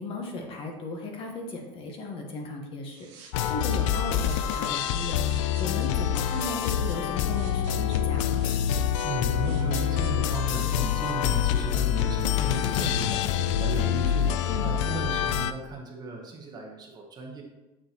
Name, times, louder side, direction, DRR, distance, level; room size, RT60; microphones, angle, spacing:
voice 1, 0.0-3.0 3.4-8.4 14.5-14.8, left 2 dB, 35° left, 2 dB, 1.2 m, -36 dB
sound 1, 2.9-11.3, right 7 dB, 85° right, 1.7 m, -50 dB
sound 2, 3.3-15.5, left 9 dB, 90° left, 0.4 m, -26 dB
Explosion, 4.6-6.7, equal, 5° right, 1.7 m, -51 dB
voice 2, 9.0-13.2 13.6-17.4, right 3 dB, 25° right, 1 dB, 1.1 m, -35 dB
7.3 x 6.6 x 3.0 m, 1.1 s
cardioid pair, 150°, 15 cm